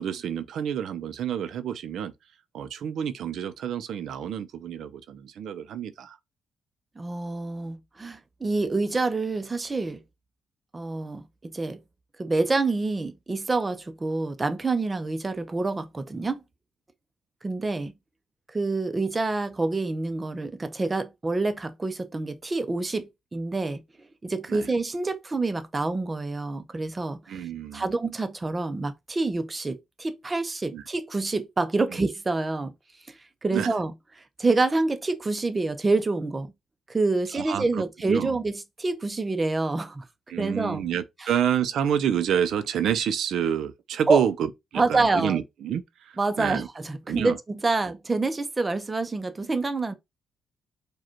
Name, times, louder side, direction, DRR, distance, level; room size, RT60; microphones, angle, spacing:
voice 1, 0.0-2.1 2.5-6.2 24.5-24.7 27.3-27.9 30.7-30.8 33.5-33.7 37.3-38.3 40.3-44.5 44.7-46.7 47.1-47.4, right 9 dB, 65° right, 0.5 m, -28 dB
voice 2, 7.0-10.0 10.7-11.8 12.2-16.4 17.4-17.9 18.5-23.8 24.2-27.5 27.7-32.7 33.1-33.9 34.4-36.5 36.9-40.0 40.4-40.8 41.2-41.3 44.1-44.2 44.8-45.4 46.2-49.9, right 3 dB, 20° right, 0.6 m, -27 dB
4.9 x 2.2 x 4.4 m
cardioid pair, 140°, 0 cm